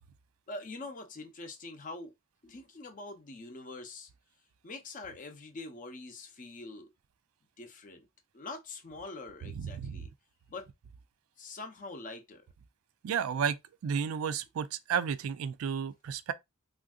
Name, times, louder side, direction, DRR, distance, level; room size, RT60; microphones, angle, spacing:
voice 1, 0.5-2.1 2.4-4.1 4.6-6.9 7.6-8.1 8.3-10.1 10.5-10.7 11.4-12.4, left 3 dB, 40° left, 0.6 m, -44 dB
voice 2, 9.6-10.1 13.0-13.6 13.8-16.3, right 7 dB, 85° right, 0.3 m, -32 dB
3.4 x 2.5 x 2.3 m
head